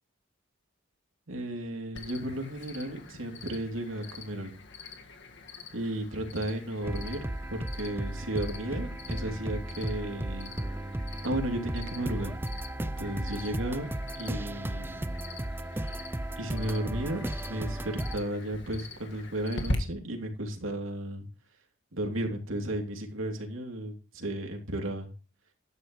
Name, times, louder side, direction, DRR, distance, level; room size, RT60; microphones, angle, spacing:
voice 1, 1.3-4.5 5.7-7.2 7.5-10.5 11.2-12.4 12.8-13.9 14.1-15.1 16.4-21.2 21.9-25.1, right 1 dB, 70° right, 3 dB, 3.0 m, -34 dB
Cricket, 1.9-19.7, left 2 dB, 55° left, 1.8 m, -44 dB
sound 1, 6.8-18.2, right 1 dB, 10° right, 0.5 m, -35 dB
12.0 x 9.8 x 3.1 m, 0.35 s
head